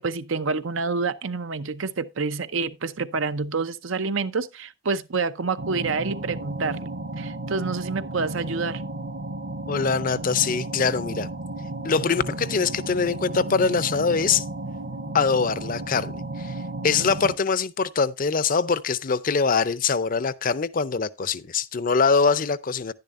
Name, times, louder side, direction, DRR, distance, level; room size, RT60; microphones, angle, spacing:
voice 1, 0.0-8.8, right 4 dB, 80° right, 0.7 m, -28 dB
sound 1, 5.6-17.4, right 2 dB, 55° right, 1.0 m, -33 dB
voice 2, 9.7-11.3 11.8-14.4 15.1-16.5 16.8-22.9, left 5 dB, 45° left, 0.6 m, -23 dB
10.5 x 10.5 x 2.5 m
head